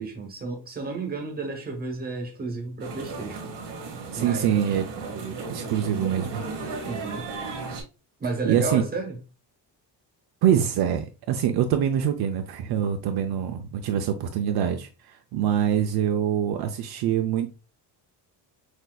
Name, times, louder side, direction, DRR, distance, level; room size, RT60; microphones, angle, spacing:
voice 1, 0.0-3.4 4.1-4.6 6.8-7.2 8.2-9.2, right 3 dB, 20° right, 1.0 m, -32 dB
sound 1, 2.8-7.8, right 4 dB, 90° right, 1.7 m, -35 dB
voice 2, 4.1-4.9 5.1-6.4 8.4-8.8 10.4-17.5, right 9 dB, 65° right, 0.5 m, -25 dB
6.2 x 2.7 x 2.2 m
cardioid pair, 165°, 41 cm